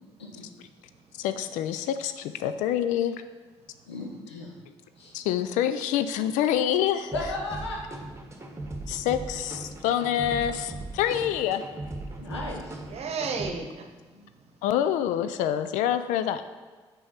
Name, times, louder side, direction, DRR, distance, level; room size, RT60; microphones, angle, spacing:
voice 1, 1.2-3.1 5.1-7.3 8.9-11.7 14.6-16.4, left 10 dB, 65° left, 11 dB, 0.4 m, -26 dB
voice 2, 3.9-4.5 5.0-5.1 7.1-7.9 12.2-12.8 14.1-14.3, left 2 dB, 85° left, 0 dB, 0.9 m, -35 dB
sound 1, 7.1-13.5, right 2 dB, 20° right, 1.3 m, -39 dB
voice 3, 8.6-9.0 12.1-12.3 12.8-14.0 14.4-14.5, right 4 dB, 50° right, 5 dB, 1.0 m, -35 dB
6.2 x 4.6 x 6.0 m, 1.4 s
figure-of-eight pair, 45°, 14 cm